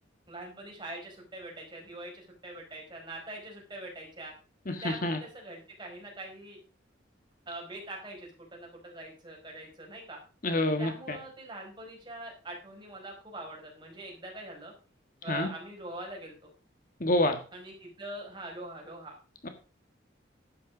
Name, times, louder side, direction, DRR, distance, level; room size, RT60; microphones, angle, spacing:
voice 1, 0.3-4.3 4.7-6.6 7.5-10.2 10.8-14.7 15.2-16.5 17.5-19.1, right 2 dB, 25° right, 0 dB, 4.9 m, -43 dB
voice 2, 4.6-5.2 10.4-11.2 15.3-15.5 17.0-17.4 19.4-19.5, left 1 dB, 45° left, 6 dB, 1.6 m, -27 dB
11.5 x 9.0 x 5.2 m, 0.35 s
head